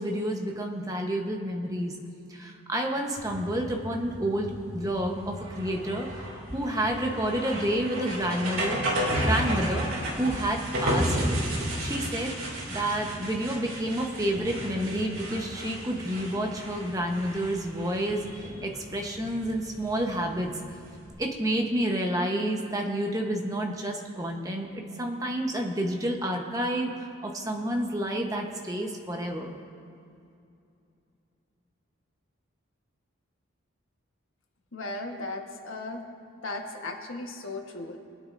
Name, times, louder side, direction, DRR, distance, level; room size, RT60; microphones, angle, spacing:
voice 1, 0.0-1.9 2.3-6.2 6.5-8.8 9.2-9.9 10.2-11.5 11.8-12.3 12.7-20.6 21.2-29.5, right 1 dB, 15° right, 1 dB, 1.0 m, -29 dB
sound 1, 3.2-21.1, equal, 85° right, 2.6 m, -33 dB
voice 2, 34.7-36.0 36.4-38.0, left 2 dB, 85° left, 2 dB, 1.4 m, -36 dB
23.0 x 9.5 x 2.6 m, 2.6 s
head